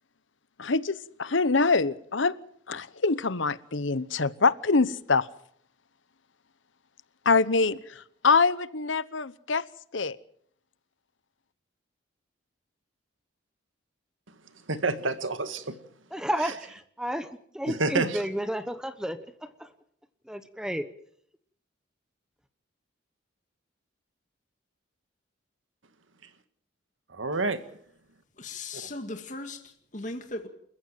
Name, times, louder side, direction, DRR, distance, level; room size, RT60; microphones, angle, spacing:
voice 1, 0.6-2.3 2.7-5.3 7.2-7.8 8.2-9.6 9.9-10.2, left 4 dB, 70° left, 1.0 m, -24 dB
voice 2, 14.7-15.8 17.7-18.2 27.1-27.6 28.7-28.8, right 3 dB, 80° right, 1.9 m, -28 dB
voice 3, 16.1-16.6 17.0-17.3 17.5-19.2 19.6-19.7 20.3-20.9, equal, 5° right, 0.9 m, -31 dB
voice 4, 28.4-30.5, left 2 dB, 40° left, 2.0 m, -38 dB
29.0 x 14.5 x 7.5 m
head